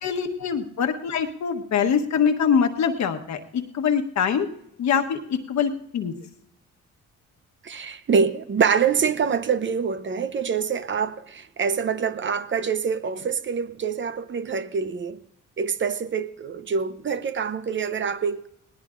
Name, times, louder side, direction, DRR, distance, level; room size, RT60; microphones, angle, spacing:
voice 1, 0.0-4.5 4.8-6.1, left 7 dB, 65° left, 1.3 m, -24 dB
voice 2, 7.6-15.2 15.6-18.5, right 6 dB, 40° right, 0.7 m, -25 dB
19.5 x 18.5 x 2.5 m
cardioid pair, 90°, 30 cm